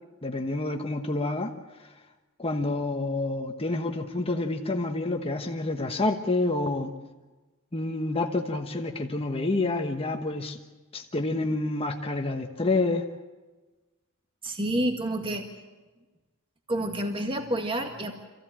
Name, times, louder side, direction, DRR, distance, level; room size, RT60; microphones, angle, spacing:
voice 1, 0.2-1.5 2.4-6.9 7.7-10.6 10.9-13.1, left 2 dB, 25° left, 4 dB, 1.2 m, -28 dB
voice 2, 14.4-15.5 16.7-18.1, right 1 dB, 25° right, 4 dB, 1.9 m, -29 dB
26.0 x 16.0 x 8.9 m, 1.2 s
head